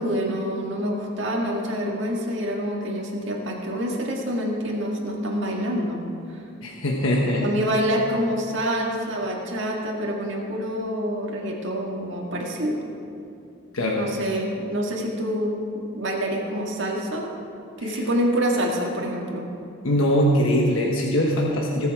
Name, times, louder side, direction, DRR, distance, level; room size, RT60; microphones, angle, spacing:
voice 1, 0.0-6.0 7.4-12.8 13.9-15.5 15.9-17.3 17.8-19.4, equal, 60° right, -2 dB, 1.9 m, -26 dB
voice 2, 6.6-7.4 13.7-14.0 17.8-18.0 19.8-21.9, equal, 75° left, -1 dB, 1.2 m, -22 dB
18.5 x 6.9 x 4.8 m, 2.6 s
head